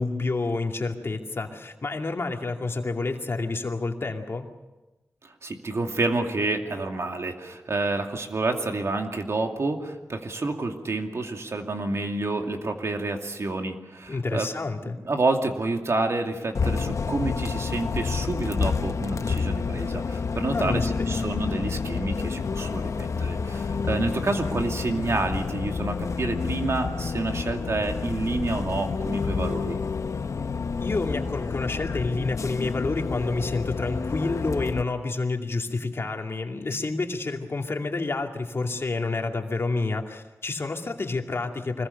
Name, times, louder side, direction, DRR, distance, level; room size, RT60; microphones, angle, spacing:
voice 1, 0.0-4.5 14.1-15.0 20.5-21.2 30.8-41.9, left 3 dB, 50° left, 3 dB, 2.5 m, -29 dB
voice 2, 5.2-14.5 15.0-29.8, right 3 dB, 60° right, 3 dB, 2.5 m, -29 dB
Bus, 16.5-34.8, left 5 dB, 70° left, 0.8 m, -29 dB
25.0 x 21.0 x 6.8 m, 1.1 s
wide cardioid pair, 85°, 5 cm